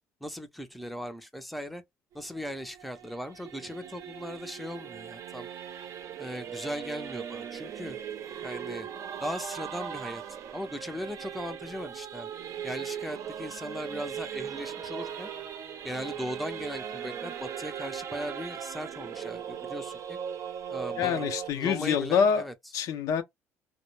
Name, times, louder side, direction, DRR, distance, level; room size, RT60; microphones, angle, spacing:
voice 1, 0.2-1.8 2.1-5.5 6.2-8.0 8.4-8.9 9.2-10.2 10.5-12.3 12.6-15.3 15.8-20.2 20.7-22.5, equal, ahead, 0.5 m, -38 dB
Singing / Musical instrument, 2.1-21.5, right 8 dB, 55° right, 0.5 m, -39 dB
voice 2, 21.0-22.5 22.7-23.2, left 7 dB, 70° left, 0.5 m, -26 dB
2.1 x 2.0 x 3.1 m
cardioid pair, 90°, 6 cm